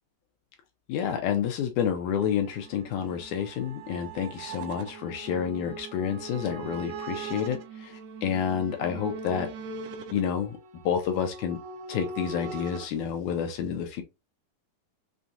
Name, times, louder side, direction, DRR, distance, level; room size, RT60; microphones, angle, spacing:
voice 1, 0.9-9.5 10.1-10.6 10.8-11.6 11.9-14.0, left 8 dB, 80° left, 1.8 m, -29 dB
sound 1, 2.2-12.9, right 4 dB, 80° right, 2.3 m, -41 dB
6.0 x 2.3 x 2.6 m
omnidirectional pair, 4.0 m